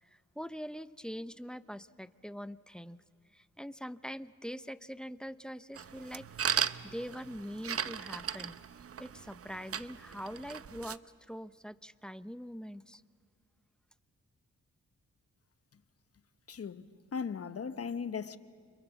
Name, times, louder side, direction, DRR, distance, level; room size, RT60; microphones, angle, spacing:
voice 1, 0.0-3.0 3.3-6.3 6.8-8.6 9.0-11.0 11.3-13.0, equal, 5° left, 0.8 m, -43 dB
sound 1, 5.8-11.0, right 7 dB, 50° right, 0.7 m, -37 dB
voice 2, 16.5-18.4, left 6 dB, 50° left, 1.1 m, -38 dB
29.5 x 26.5 x 7.1 m
cardioid pair, 55°, 30 cm